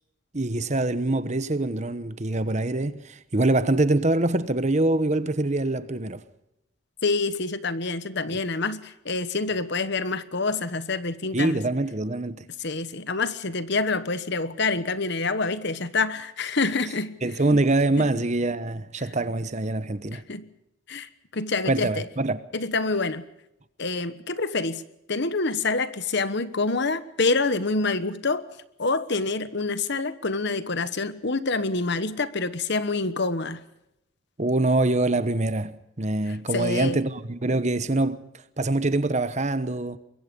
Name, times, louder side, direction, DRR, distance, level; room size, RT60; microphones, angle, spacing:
voice 1, 0.3-6.2 8.3-8.4 11.3-12.5 17.2-20.2 21.7-22.4 34.4-38.2 38.6-40.0, right 2 dB, 35° right, 1.0 m, -24 dB
voice 2, 7.0-11.6 12.6-17.2 18.0-18.1 20.1-20.5 20.9-22.1 22.5-23.2 23.8-24.8 25.1-28.5 28.8-33.6 36.5-37.0, left 3 dB, 55° left, 1.2 m, -27 dB
24.0 x 22.0 x 5.3 m
head